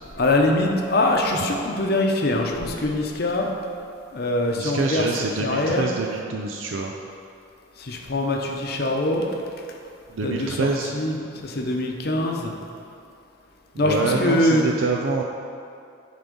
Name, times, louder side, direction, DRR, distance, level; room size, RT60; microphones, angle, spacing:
voice 1, 0.2-3.5 4.1-5.0 5.4-5.8 7.9-9.2 10.2-10.7 10.9-11.1 11.4-12.5 13.8-14.6, left 1 dB, 50° left, 1 dB, 0.8 m, -23 dB
voice 2, 4.5-6.9 10.1-10.9 13.7-15.2, right 3 dB, 80° right, 1 dB, 0.5 m, -26 dB
9.9 x 3.7 x 5.2 m, 2.5 s
head